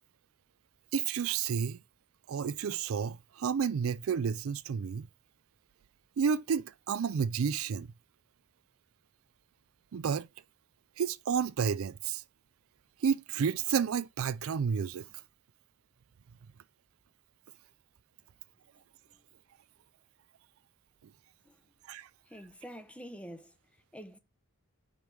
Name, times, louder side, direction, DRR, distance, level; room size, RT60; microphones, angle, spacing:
voice 1, 0.9-1.8 2.3-5.1 6.2-7.9 9.9-10.3 11.0-12.2 13.0-15.0 21.9-22.1, right 6 dB, 70° right, 0.4 m, -31 dB
voice 2, 22.3-23.5 23.9-24.2, equal, 5° left, 0.7 m, -46 dB
5.3 x 4.7 x 6.0 m
head